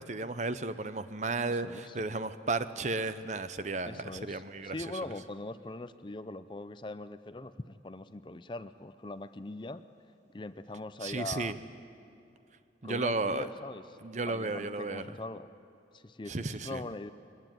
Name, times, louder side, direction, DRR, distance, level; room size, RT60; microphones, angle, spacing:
voice 1, 0.0-4.7 11.0-11.6 12.8-13.5 14.0-15.1 16.3-16.8, right 3 dB, 40° right, 12 dB, 0.8 m, -34 dB
voice 2, 1.4-2.0 3.8-9.8 10.3-11.5 12.8-13.8 14.2-15.5 15.9-17.1, left 2 dB, 25° left, 13 dB, 0.5 m, -41 dB
22.5 x 21.0 x 9.1 m, 2.7 s
head